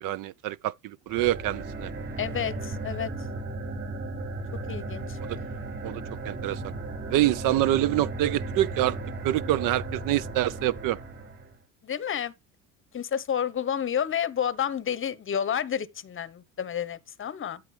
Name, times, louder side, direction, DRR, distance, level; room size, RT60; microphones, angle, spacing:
voice 1, 0.0-1.9 5.3-5.4 5.8-6.7 7.1-9.0 9.2-11.0, right 14 dB, 55° right, 0.4 m, -26 dB
sound 1, 1.1-11.6, right 2 dB, 30° right, 5.0 m, -35 dB
voice 2, 2.2-3.1 4.7-5.2 11.8-12.3 12.9-17.6, left 8 dB, 30° left, 0.8 m, -30 dB
12.0 x 4.5 x 3.2 m
hypercardioid pair, 80°, 41 cm